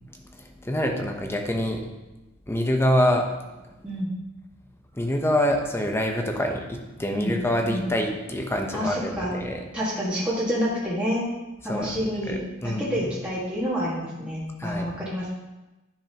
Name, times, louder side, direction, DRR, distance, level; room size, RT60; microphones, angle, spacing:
voice 1, 0.3-1.8 2.5-3.3 4.9-9.6 11.6-13.1 14.6-15.0, left 1 dB, 10° left, 3 dB, 0.8 m, -26 dB
voice 2, 8.7-9.3 9.7-11.2 11.6-12.4 12.6-15.3, equal, 5° right, -9 dB, 1.7 m, -28 dB
10.5 x 5.5 x 2.9 m, 1.0 s
head